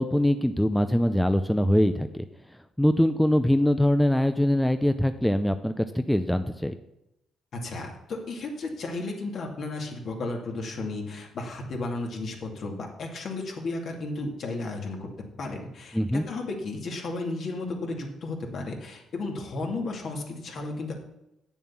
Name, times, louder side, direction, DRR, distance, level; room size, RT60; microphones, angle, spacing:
voice 1, 0.0-2.2 2.8-6.7 15.9-16.2, left 1 dB, 5° left, 9 dB, 0.5 m, -23 dB
voice 2, 7.5-15.1 15.4-20.9, left 2 dB, 60° left, 1 dB, 2.4 m, -34 dB
8.5 x 7.1 x 7.2 m, 0.88 s
cardioid pair, 90°, 0 cm